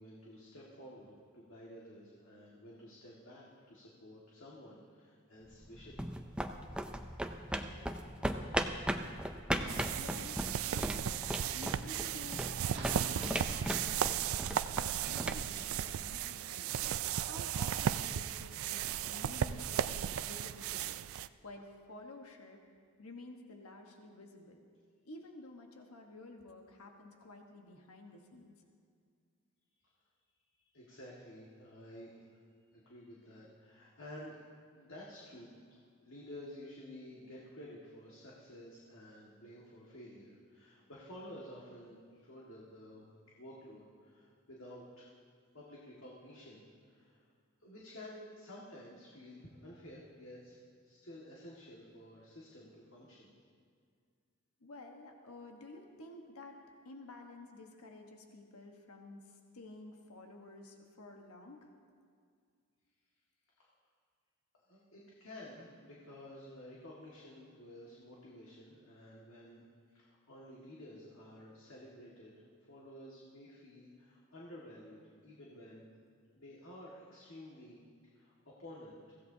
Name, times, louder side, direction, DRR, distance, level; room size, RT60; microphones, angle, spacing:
voice 1, 0.0-6.0 30.7-32.4 32.7-34.4 34.7-35.6 36.0-43.1 43.4-45.1 45.5-47.3 47.6-50.6 50.8-53.3 63.6-63.7 64.7-69.6 69.9-72.4 72.7-75.9 76.4-79.2, left 1 dB, 65° left, -5 dB, 1.8 m, -52 dB
sound 1, 5.5-16.3, right 1 dB, 5° right, 0.5 m, -38 dB
voice 2, 7.6-8.1 9.9-11.2 11.5-12.6 12.9-16.8 17.2-21.0 21.4-22.6 23.0-24.6 25.0-28.5 54.6-56.6 56.8-61.7, left 2 dB, 85° left, 2 dB, 1.3 m, -52 dB
sound 2, 9.5-11.1 11.4-11.8 12.7-15.8, right 2 dB, 55° right, 1.3 m, -48 dB
sound 3, 9.7-21.3, right 9 dB, 70° right, 0.4 m, -36 dB
23.0 x 16.0 x 2.8 m, 2.1 s
head